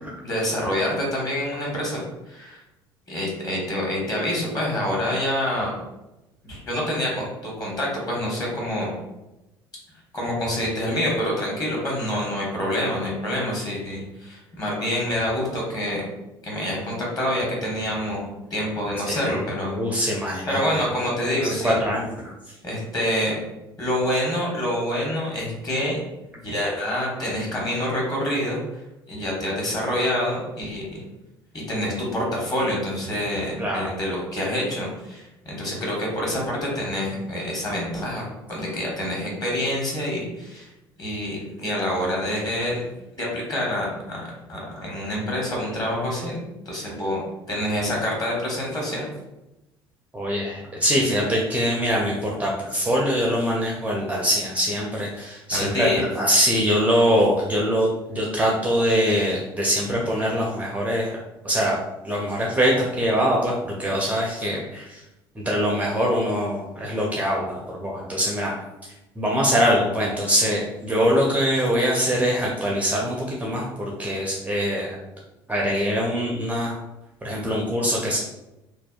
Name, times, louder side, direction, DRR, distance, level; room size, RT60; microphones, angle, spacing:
voice 1, 0.2-2.6 3.1-5.7 6.4-8.9 10.1-16.1 16.4-19.7 20.5-21.8 22.6-23.4 23.8-26.0 26.3-28.6 29.1-31.0 31.7-40.7 41.0-42.9 43.2-46.4 46.6-47.2 47.5-49.1 55.5-56.0, left 1 dB, 30° left, -3 dB, 1.1 m, -27 dB
voice 2, 19.1-20.8 21.6-22.6 33.6-33.9 50.1-55.9 56.1-61.8 62.0-65.0 65.3-68.5 69.2-75.0 75.5-76.8 77.2-78.2, equal, 10° right, -3 dB, 0.4 m, -23 dB
2.6 x 2.1 x 2.3 m, 0.95 s
figure-of-eight pair, 60°, 13 cm